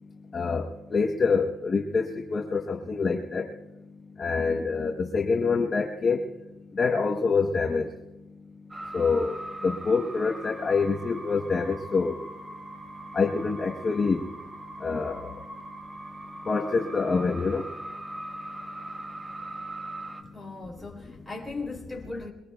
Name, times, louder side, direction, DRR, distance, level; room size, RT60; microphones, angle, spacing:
voice 1, 0.3-3.5 4.2-6.2 6.8-7.9 8.9-9.3 9.6-12.2 13.1-14.2 14.8-15.3 16.5-17.6, left 4 dB, 30° left, 0.9 m, -26 dB
sound 1, 8.7-20.2, right 2 dB, 15° right, 1.0 m, -41 dB
voice 2, 20.2-22.3, left 3 dB, ahead, 3.0 m, -38 dB
23.0 x 22.5 x 2.3 m
cardioid pair, 155°, 0 cm